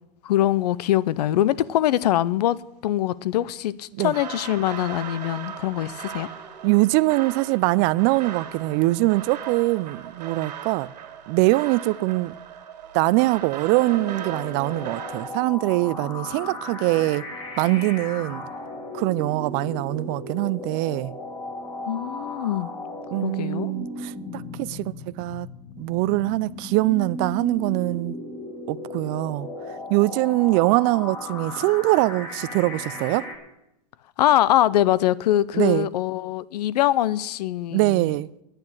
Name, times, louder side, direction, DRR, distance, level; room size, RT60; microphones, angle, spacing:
voice 1, 0.2-6.3 21.9-22.7 23.2-23.7 34.2-38.1, left 13 dB, 75° left, 0.6 m, -23 dB
sound 1, 4.1-15.3, right 8 dB, 90° right, 2.4 m, -38 dB
voice 2, 6.6-10.9 11.3-12.3 12.9-17.2 17.6-18.4 18.9-21.1 23.1-25.5 25.8-28.2 28.7-29.5 29.9-33.3 35.5-35.9 37.7-38.3, right 21 dB, 45° right, 0.4 m, -23 dB
sound 2, 13.7-33.4, left 2 dB, 20° left, 2.2 m, -36 dB
9.6 x 9.1 x 7.9 m
supercardioid pair, 130°, 21 cm